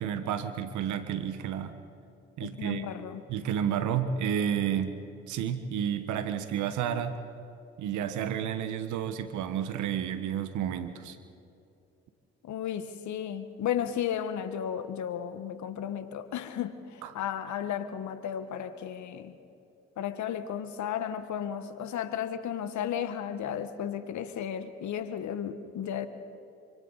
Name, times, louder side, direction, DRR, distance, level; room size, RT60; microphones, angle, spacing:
voice 1, 0.0-1.7 2.4-2.9 3.3-5.0 5.3-7.2 7.8-11.2 17.0-17.1, right 9 dB, 75° right, 10 dB, 1.4 m, -31 dB
voice 2, 2.4-3.2 12.4-19.3 20.0-26.1, left 9 dB, 70° left, 11 dB, 1.5 m, -34 dB
27.5 x 25.5 x 4.2 m, 2.6 s
hypercardioid pair, 45°, 30 cm